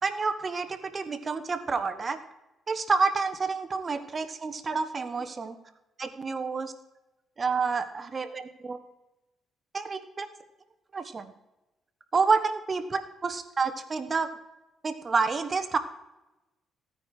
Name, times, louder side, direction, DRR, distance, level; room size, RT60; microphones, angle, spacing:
voice 1, 0.0-2.2 2.7-5.6 6.0-6.7 7.4-8.8 9.7-10.3 10.9-11.3 12.1-14.3 14.8-15.8, right 4 dB, 35° right, 9 dB, 1.2 m, -29 dB
16.0 x 9.3 x 4.9 m, 0.98 s
cardioid pair, 90°, 0 cm